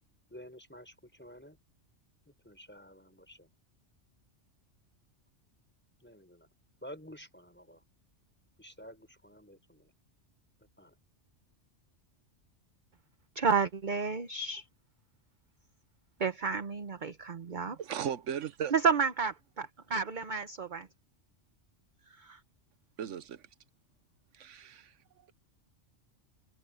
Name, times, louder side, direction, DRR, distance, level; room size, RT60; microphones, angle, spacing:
voice 1, 0.3-1.6 2.3-3.5 6.0-6.5 6.8-7.8 8.6-9.9 10.8-11.0, equal, 10° left, 6.5 m, -51 dB
voice 2, 13.3-14.6 16.2-17.8 18.7-20.9 22.2-22.4, right 5 dB, 45° right, 1.0 m, -31 dB
voice 3, 17.8-18.7 23.0-23.4 24.3-24.9, right 8 dB, 85° right, 1.2 m, -36 dB
omnidirectional pair, 1.2 m